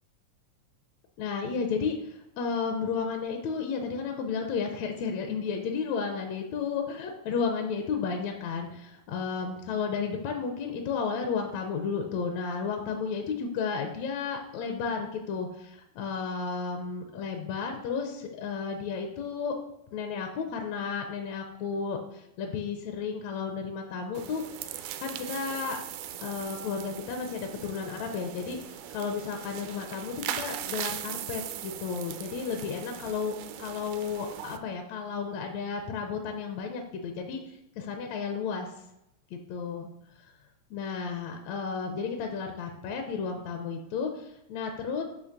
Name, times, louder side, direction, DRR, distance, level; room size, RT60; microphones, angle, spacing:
voice 1, 1.2-19.5 19.9-24.4 25.0-25.8 26.2-33.3 33.6-37.4 37.8-38.7 39.3-39.9 40.7-45.0, left 5 dB, 75° left, 4 dB, 1.6 m, -33 dB
sound 1, 24.1-34.6, right 10 dB, 80° right, 1.7 m, -39 dB
8.4 x 2.9 x 5.9 m, 0.87 s
omnidirectional pair, 3.9 m